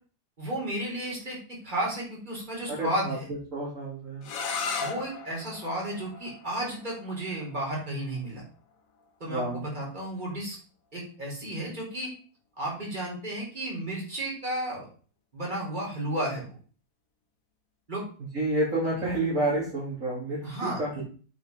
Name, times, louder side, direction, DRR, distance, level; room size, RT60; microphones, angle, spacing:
voice 1, 0.4-1.4 1.6-3.3 4.8-8.4 9.2-10.6 10.9-12.1 12.6-14.9 15.3-16.6 17.9-18.0 20.4-21.0, right 1 dB, 25° right, -4 dB, 4.2 m, -33 dB
voice 2, 2.7-3.2 3.5-4.3 9.3-9.6 18.3-21.0, right 2 dB, 50° right, -6 dB, 3.4 m, -29 dB
sound 1, 4.2-9.9, left 5 dB, 55° left, 1.4 m, -38 dB
7.9 x 5.8 x 5.3 m, 0.40 s
omnidirectional pair, 1.8 m